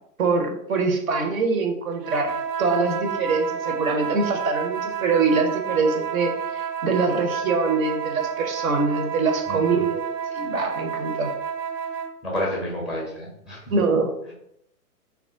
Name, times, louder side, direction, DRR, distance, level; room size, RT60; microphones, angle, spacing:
voice 1, 0.2-10.0 10.3-11.3 13.7-14.3, right 4 dB, 60° right, 4 dB, 1.0 m, -24 dB
sound 1, 2.0-12.2, right 7 dB, 85° right, 0.6 m, -30 dB
voice 2, 9.5-9.9 12.2-13.7 14.2-14.3, left 1 dB, ahead, -4 dB, 0.5 m, -30 dB
3.4 x 2.4 x 3.7 m, 0.73 s
figure-of-eight pair, 120°, 47 cm